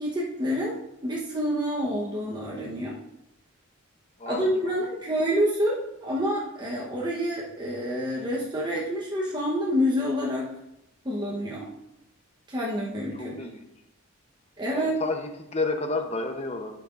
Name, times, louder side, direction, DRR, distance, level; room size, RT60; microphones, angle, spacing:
voice 1, 0.0-3.0 4.3-10.5 11.0-11.7 12.5-13.3 14.6-15.0, equal, 20° right, -5 dB, 0.9 m, -28 dB
voice 2, 4.2-4.7 13.1-13.7 14.7-16.8, left 3 dB, 30° left, 5 dB, 0.7 m, -31 dB
11.0 x 5.9 x 2.5 m, 0.87 s
head